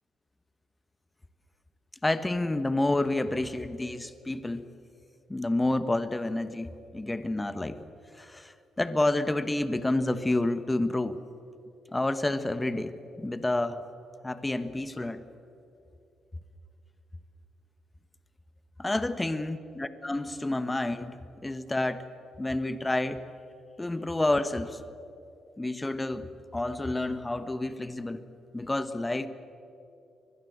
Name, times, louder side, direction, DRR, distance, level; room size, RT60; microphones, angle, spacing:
voice 1, 2.0-4.6 5.3-7.8 8.2-11.2 11.9-13.8 14.2-15.2 18.8-22.1 22.4-23.2 23.8-24.8 25.6-28.2 28.5-29.3, left 2 dB, 15° left, 12 dB, 1.2 m, -29 dB
24.0 x 21.5 x 8.1 m, 2.7 s
cardioid pair, 90°, 0 cm